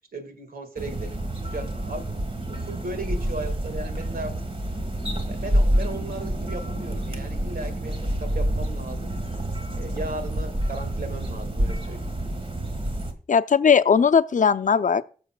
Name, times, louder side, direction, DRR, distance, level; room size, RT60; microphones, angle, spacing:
voice 1, 0.1-1.2 1.5-2.2 2.5-4.3 5.3-9.1 9.7-12.1, right 2 dB, 85° right, 1.9 m, -36 dB
sound 1, 0.8-13.1, right 1 dB, 40° right, 1.6 m, -28 dB
voice 2, 13.3-15.0, left 6 dB, 60° left, 0.5 m, -18 dB
19.5 x 6.7 x 2.3 m
cardioid pair, 50°, 15 cm